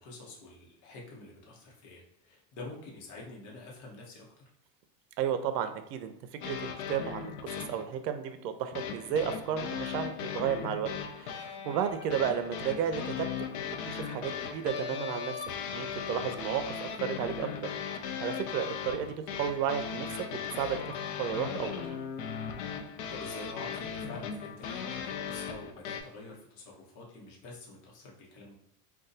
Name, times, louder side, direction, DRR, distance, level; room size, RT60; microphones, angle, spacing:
voice 1, 0.0-4.4 23.1-28.6, left 3 dB, 35° left, -2 dB, 0.9 m, -47 dB
voice 2, 5.2-6.1 6.4-7.3 7.7-13.5 13.9-15.3 15.7-17.5 18.2-19.1 19.4-20.1 20.3-22.0, right 8 dB, 80° right, 8 dB, 0.6 m, -33 dB
sound 1, 6.4-7.9 8.7-26.0, left 7 dB, 65° left, 0.6 m, -38 dB
2.6 x 2.3 x 3.9 m, 0.79 s
supercardioid pair, 135°, 49 cm